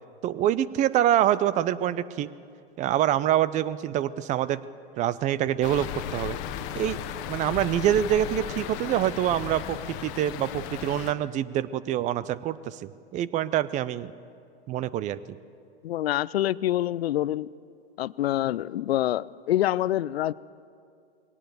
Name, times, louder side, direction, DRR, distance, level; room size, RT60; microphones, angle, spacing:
voice 1, 0.2-2.3 2.8-4.6 5.0-6.4 6.7-7.0 7.3-14.1 14.7-15.4, right 11 dB, 25° right, 18 dB, 0.5 m, -26 dB
sound 1, 5.6-11.1, left 10 dB, 40° left, 1.2 m, -35 dB
voice 2, 15.8-17.5 18.0-20.3, left 13 dB, 80° left, 21 dB, 0.5 m, -26 dB
21.0 x 18.0 x 6.8 m, 2.4 s
hypercardioid pair, 115°, 30 cm